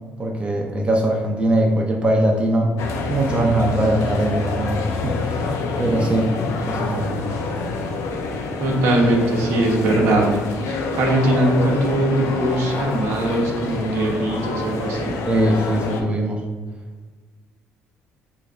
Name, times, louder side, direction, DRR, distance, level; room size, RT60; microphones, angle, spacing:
voice 1, 0.2-2.8 3.1-5.5 5.8-6.3 6.7-7.1 15.3-16.4, right 1 dB, 25° right, 0 dB, 0.5 m, -21 dB
sound 1, 2.8-16.0, left 3 dB, 75° left, 0.4 m, -27 dB
voice 2, 8.6-10.2 10.6-15.1, right 1 dB, 75° right, -1 dB, 0.7 m, -20 dB
3.4 x 3.0 x 2.4 m, 1.4 s
cardioid pair, 85°, 5 cm